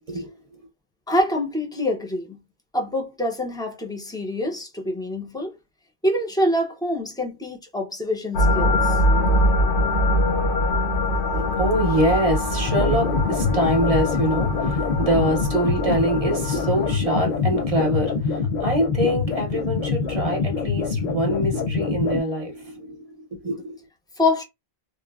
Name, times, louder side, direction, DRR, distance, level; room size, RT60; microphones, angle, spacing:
voice 1, 1.1-2.4 2.7-5.5 6.0-9.0 24.2-24.4, left 1 dB, 5° left, 0.3 m, -25 dB
sound 1, 8.3-17.0, left 1 dB, 90° left, 0.8 m, -23 dB
voice 2, 11.3-23.1 23.4-23.8, equal, 40° right, 0.6 m, -24 dB
sound 2, 12.7-22.2, left 5 dB, 55° left, 0.5 m, -25 dB
3.0 x 2.0 x 2.2 m
omnidirectional pair, 1.1 m